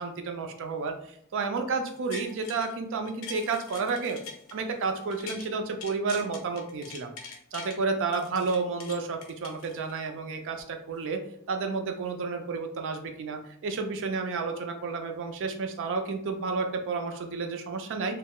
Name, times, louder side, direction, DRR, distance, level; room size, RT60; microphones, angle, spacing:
voice 1, 0.0-4.2 4.5-7.1 7.5-11.2 11.5-18.2, right 4 dB, 60° right, 4 dB, 0.4 m, -31 dB
sound 1, 1.9-2.7 3.1-5.5 5.8-7.8 8.1-10.1 10.6-10.7, left 5 dB, 65° left, 0.5 m, -44 dB
2.3 x 2.0 x 3.5 m, 0.68 s
head